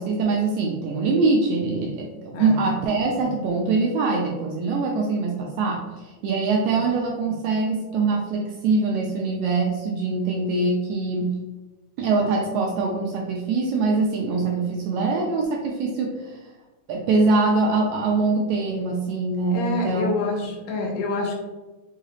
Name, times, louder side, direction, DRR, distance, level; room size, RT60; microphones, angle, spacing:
voice 1, 0.0-11.3 12.0-16.4 16.9-20.1, right 3 dB, 80° right, -1 dB, 1.7 m, -23 dB
voice 2, 2.3-2.7 19.5-21.4, left 3 dB, 80° left, 1 dB, 2.4 m, -27 dB
5.5 x 2.3 x 3.2 m, 1.2 s
omnidirectional pair, 3.7 m